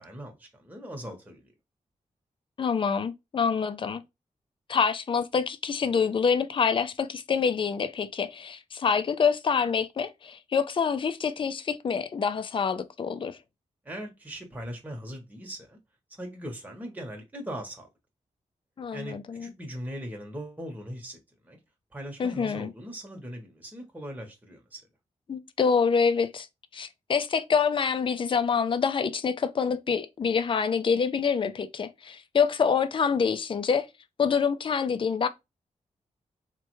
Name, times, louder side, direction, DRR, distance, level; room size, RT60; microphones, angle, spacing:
voice 1, 0.0-1.5 13.8-15.8 16.1-17.9 18.9-21.2 21.4-21.6 21.9-24.8, equal, 10° right, 0.9 m, -40 dB
voice 2, 2.6-4.0 4.7-13.4 18.8-19.5 22.2-22.7 25.3-26.5 26.7-33.9 34.2-35.3, left 6 dB, 40° left, 0.4 m, -26 dB
3.2 x 2.2 x 3.0 m
cardioid pair, 65°, 13 cm